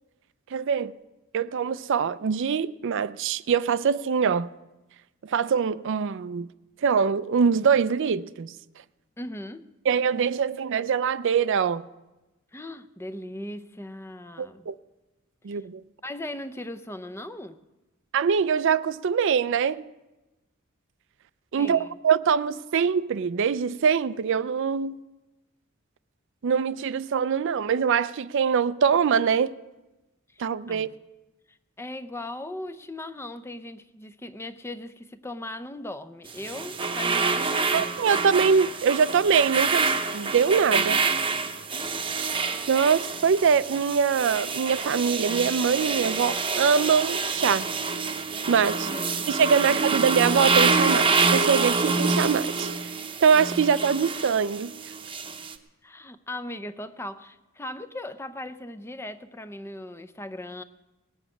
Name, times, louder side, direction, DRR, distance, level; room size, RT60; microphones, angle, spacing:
voice 1, 0.5-0.9 1.3-4.5 5.3-6.5 6.8-8.5 9.9-11.8 14.4-14.7 15.4-15.8 18.1-19.8 21.5-25.0 26.4-29.5 30.4-30.9 37.7-41.0 42.7-47.7 48.5-48.9 49.3-52.9 53.2-54.7, right 6 dB, 60° right, 0.4 m, -23 dB
voice 2, 9.2-9.7 12.5-14.7 15.5-15.6 16.0-17.6 21.5-22.0 30.3-30.4 30.7-30.9 31.5-38.2 41.7-42.1 48.8-49.3 49.6-49.7 55.8-60.6, left 1 dB, 10° left, 0.5 m, -38 dB
sound 1, 36.3-55.5, right 4 dB, 25° right, 0.8 m, -27 dB
19.0 x 7.1 x 8.4 m
head